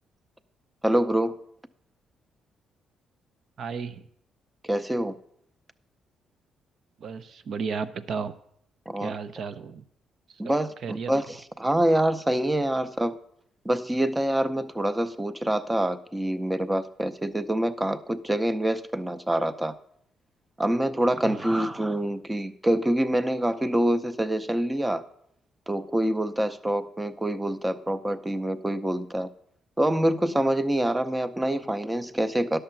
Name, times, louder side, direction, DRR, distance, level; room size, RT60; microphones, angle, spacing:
voice 1, 0.8-1.4 4.6-5.2 8.9-9.2 10.4-13.2 13.6-19.7 20.6-25.0 25.7-29.3 29.8-32.6, right 1 dB, 10° right, 12 dB, 0.6 m, -26 dB
voice 2, 3.6-4.1 7.0-8.3 9.0-9.8 10.3-10.5 10.8-11.1 21.2-21.7, right 5 dB, 60° right, 13 dB, 0.6 m, -34 dB
10.5 x 6.7 x 5.7 m, 0.70 s
cardioid pair, 90°, 0 cm